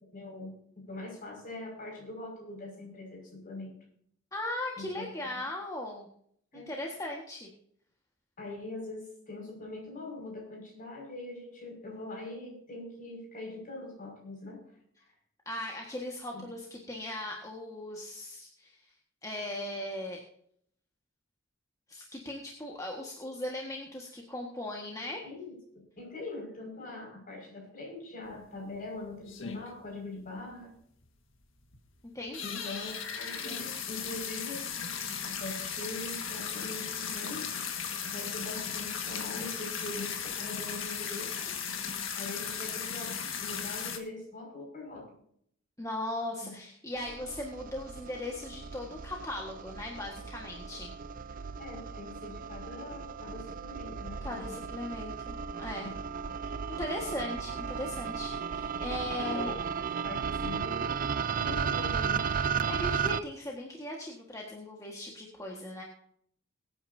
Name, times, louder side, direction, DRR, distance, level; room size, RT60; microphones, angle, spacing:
voice 1, 0.1-0.6 0.9-3.8 4.8-5.1 6.5-6.7 8.4-14.6 16.3-16.5 25.2-30.7 32.4-34.6 35.2-37.5 38.0-41.5 42.1-45.2 46.4-46.6 51.6-54.7 55.8-55.9 59.0-61.0 61.3-62.3, left 2 dB, 45° left, 0 dB, 5.8 m, -42 dB
voice 2, 4.3-6.1 6.5-7.5 15.4-18.9 19.2-20.2 21.9-25.2 32.1-32.6 45.8-50.9 54.2-55.9 56.4-59.5 62.4-65.8, left 1 dB, 15° left, -1 dB, 1.6 m, -38 dB
sound 1, 28.3-28.4 28.7-28.8 29.2-29.9 30.3-30.4 30.5-30.6 31.0-31.1 31.6-31.9 32.2-44.0, left 7 dB, 70° left, 1.7 m, -36 dB
sound 2, 47.0-63.2, right 6 dB, 45° right, 0.5 m, -35 dB
22.0 x 9.3 x 2.8 m, 0.65 s
head